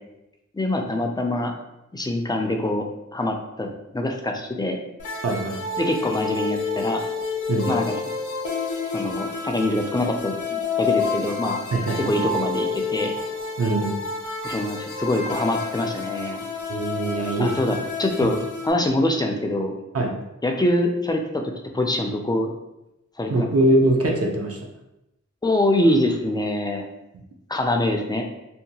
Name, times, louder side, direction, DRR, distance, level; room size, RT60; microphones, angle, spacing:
voice 1, 0.5-1.5 1.9-2.9 3.1-4.8 5.8-7.0 7.7-7.9 8.9-11.6 12.0-13.1 14.4-16.4 17.4-18.4 18.6-19.7 20.4-22.5 23.2-23.5 25.4-26.9 27.5-28.2, left 1 dB, 15° left, 2 dB, 0.3 m, -24 dB
sound 1, 5.0-18.7, left 4 dB, 75° left, 0.6 m, -29 dB
voice 2, 5.2-5.6 7.5-7.7 11.7-12.1 13.6-13.9 16.7-17.6 19.9-20.1 23.3-24.6, right 1 dB, 50° right, 0 dB, 0.5 m, -22 dB
2.7 x 2.2 x 2.7 m, 0.91 s
wide cardioid pair, 85°, 30 cm